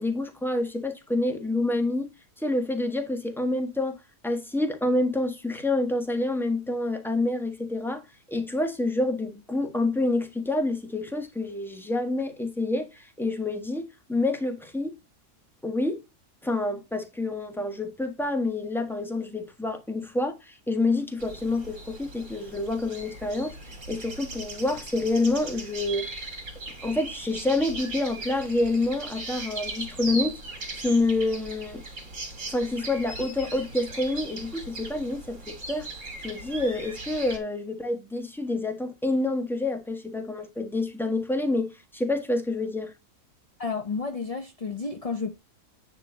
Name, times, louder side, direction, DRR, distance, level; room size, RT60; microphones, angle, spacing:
voice 1, 0.0-2.1 2.4-4.0 4.2-8.0 8.3-15.0 15.6-16.0 16.4-23.5 23.9-26.1 26.8-30.4 30.7-31.8 32.5-35.9 36.2-42.9, left 2 dB, ahead, 1.2 m, -27 dB
sound 1, 21.2-37.4, right 2 dB, 50° right, 2.7 m, -39 dB
voice 2, 43.6-45.4, left 4 dB, 40° left, 0.5 m, -31 dB
9.7 x 3.8 x 5.1 m
omnidirectional pair, 1.7 m